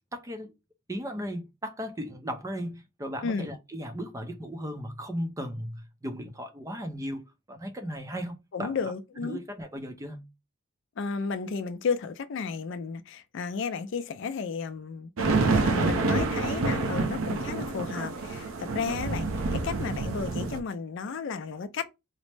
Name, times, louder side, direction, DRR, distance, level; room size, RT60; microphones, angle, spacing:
voice 1, 0.1-0.5 0.9-10.3 19.8-20.0, equal, 15° right, 0.5 m, -36 dB
voice 2, 3.2-3.6 8.5-9.4 11.0-15.1 15.5-21.9, left 5 dB, 65° left, 0.4 m, -33 dB
sound 1, 15.2-20.6, right 3 dB, 85° right, 0.6 m, -27 dB
4.1 x 2.0 x 3.1 m
head